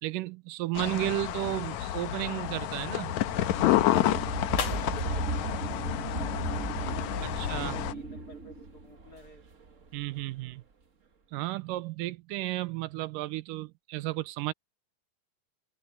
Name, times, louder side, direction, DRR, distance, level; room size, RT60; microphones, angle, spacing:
voice 1, 0.0-3.1 7.4-7.8 9.9-10.6 11.3-14.5, right 17 dB, 80° right, 2.3 m, -33 dB
sound 1, 0.8-7.9, left 13 dB, 70° left, 2.1 m, -29 dB
sound 2, 1.2-10.2, right 3 dB, 50° right, 0.8 m, -36 dB
voice 2, 4.3-6.5 6.9-9.4, left 1 dB, 30° left, 3.7 m, -51 dB
sound 3, 4.5-6.9, left 7 dB, 50° left, 2.8 m, -44 dB
omnidirectional pair, 3.8 m